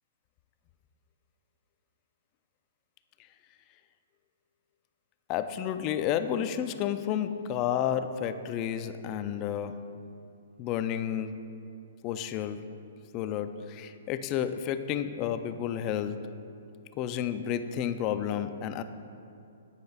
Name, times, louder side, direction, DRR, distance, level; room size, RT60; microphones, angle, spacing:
voice 1, 5.3-9.8 10.6-11.5 12.0-12.6 13.1-16.3 17.0-18.8, left 9 dB, 35° left, 10 dB, 0.4 m, -31 dB
8.6 x 4.9 x 4.1 m, 2.6 s
hypercardioid pair, 125°, 0 cm